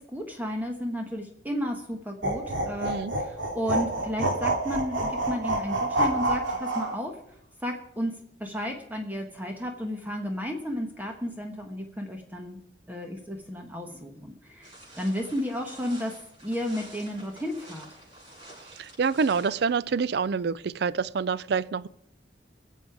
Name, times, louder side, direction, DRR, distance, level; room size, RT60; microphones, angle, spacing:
voice 1, 0.0-8.1 8.4-12.6 12.9-16.1 16.4-17.9, equal, 10° right, 2 dB, 1.2 m, -33 dB
sound 1, 2.2-7.0, right 1 dB, 90° right, 2.6 m, -28 dB
voice 2, 2.8-3.1 19.0-21.9, right 5 dB, 60° right, 19 dB, 0.4 m, -26 dB
sound 2, 14.6-19.6, right 1 dB, 30° right, 6.9 m, -49 dB
22.0 x 7.4 x 4.8 m, 0.75 s
head